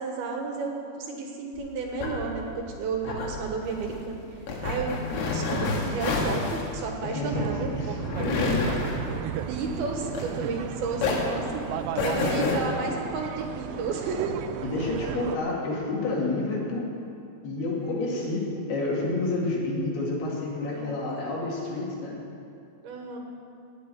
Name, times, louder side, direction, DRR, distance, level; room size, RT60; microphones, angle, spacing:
voice 1, 0.0-2.4 2.8-4.2 4.6-4.9 5.2-7.7 9.5-11.7 12.0-14.4 17.6-18.1 20.6-21.1 22.8-23.2, right 4 dB, 70° right, 1 dB, 3.1 m, -32 dB
sound 1, 1.5-10.6 10.9-12.6, left 3 dB, 90° left, 4.0 m, -30 dB
voice 2, 7.0-8.8 12.1-12.6 14.6-16.9 17.4-22.2, left 2 dB, 70° left, -4 dB, 4.4 m, -29 dB
sound 2, 7.3-15.4, right 10 dB, 85° right, 2.6 m, -34 dB
17.5 x 6.6 x 9.2 m, 2.5 s
omnidirectional pair, 4.8 m